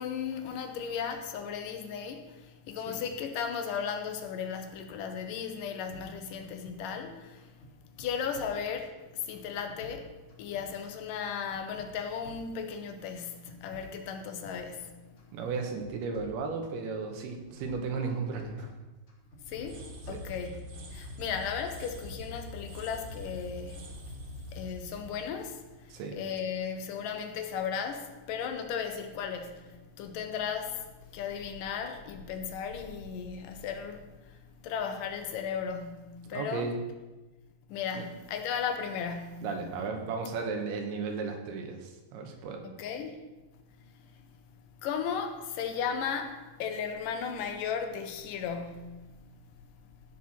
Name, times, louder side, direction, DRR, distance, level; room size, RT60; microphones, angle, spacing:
voice 1, 0.0-7.6 7.9-10.1 10.4-15.0 19.5-24.1 24.5-36.7 37.7-39.5 42.6-43.2 43.9-44.1 44.8-49.0, left 7 dB, 70° left, 2.3 m, -36 dB
sound 1, 5.9-7.1 7.4-9.0 9.3-11.0 11.3-12.9 13.2-14.9 15.2-16.8 17.1-18.8 19.1-20.7 21.0-21.5, left 1 dB, 40° left, 2.8 m, -52 dB
voice 2, 15.3-18.7 20.1-20.2 25.9-26.2 36.3-36.8 37.9-38.0 39.4-42.6, right 4 dB, 85° right, 3.2 m, -35 dB
sound 2, 19.5-26.3, left 1 dB, 60° right, 2.6 m, -44 dB
16.0 x 6.2 x 4.3 m
omnidirectional pair, 4.4 m